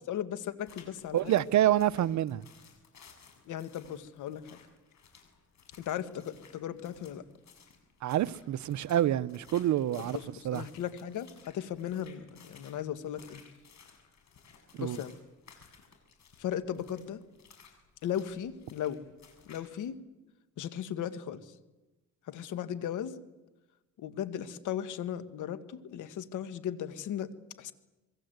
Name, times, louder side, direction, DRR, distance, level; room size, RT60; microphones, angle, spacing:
voice 1, 0.1-1.3 3.5-4.6 5.8-7.2 10.0-13.4 14.8-15.1 16.4-17.2 18.0-19.0 19.5-20.0 20.6-21.5 22.3-23.2 24.0-27.3 27.6-27.7, left 10 dB, 80° left, 1.8 m, -37 dB
sound 1, 0.7-19.9, left 6 dB, 65° left, 7.2 m, -58 dB
voice 2, 1.1-2.5 8.0-10.2 10.4-10.6 14.8-15.0, right 12 dB, 70° right, 0.9 m, -27 dB
27.0 x 23.5 x 8.1 m
cardioid pair, 90°, 30 cm